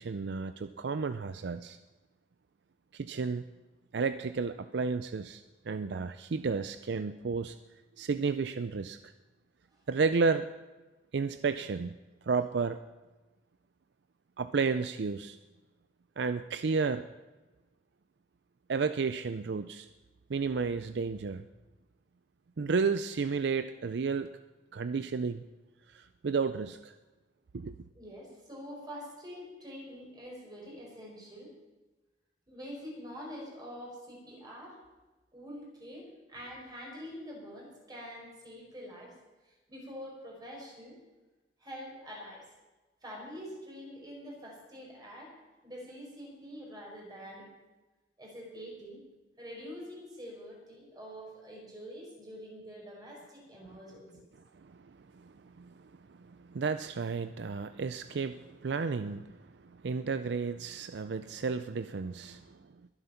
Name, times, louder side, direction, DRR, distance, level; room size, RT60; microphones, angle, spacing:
voice 1, 0.0-1.8 2.9-3.5 3.9-7.6 8.0-9.0 9.9-10.5 11.1-11.9 12.3-12.8 14.4-15.4 16.2-17.0 18.7-19.9 20.3-21.4 22.6-24.3 24.7-25.4 25.9-27.0 27.5-27.8 54.6-62.6, right 5 dB, 65° right, 11 dB, 0.5 m, -32 dB
voice 2, 27.9-31.5 32.5-34.8 35.3-39.1 39.4-41.0 41.6-42.4 43.0-45.3 45.6-47.5 48.2-49.0 49.4-54.3, equal, 25° right, -2 dB, 5.0 m, -45 dB
22.0 x 7.9 x 5.8 m, 1.2 s
head